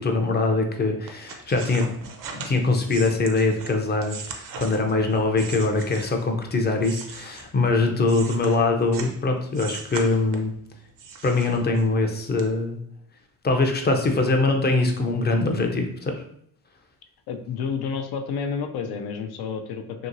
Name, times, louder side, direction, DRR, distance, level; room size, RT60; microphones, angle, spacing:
voice 1, 0.0-1.8 2.3-10.5 11.2-12.8 13.4-16.1, left 3 dB, 25° left, 3 dB, 0.5 m, -23 dB
sound 1, 1.1-6.3 6.8-9.2 9.5-10.6 11.0-12.0 12.4-12.5, right 5 dB, 55° right, 0.6 m, -39 dB
voice 2, 17.3-20.1, left 6 dB, 75° left, 5 dB, 0.6 m, -30 dB
2.9 x 2.8 x 2.6 m, 0.68 s
cardioid pair, 95°, 39 cm